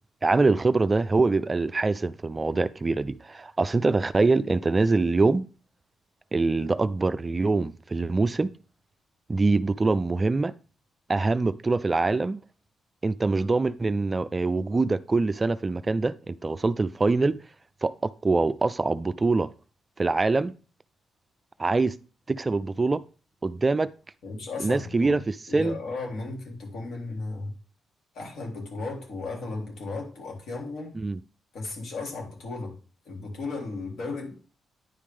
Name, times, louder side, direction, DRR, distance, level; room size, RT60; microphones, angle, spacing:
voice 1, 0.2-5.5 6.3-8.5 9.3-10.5 11.1-12.4 13.0-17.4 17.8-19.5 20.0-20.5 21.6-22.0 22.3-23.0 23.4-23.9 24.6-25.8 31.0-31.2, right 3 dB, 20° right, 0.3 m, -24 dB
voice 2, 24.2-25.2 25.5-27.5 28.1-30.9 31.5-32.7 33.0-34.3, left 3 dB, 70° left, 3.4 m, -35 dB
9.8 x 5.0 x 3.6 m
cardioid pair, 130°, 0 cm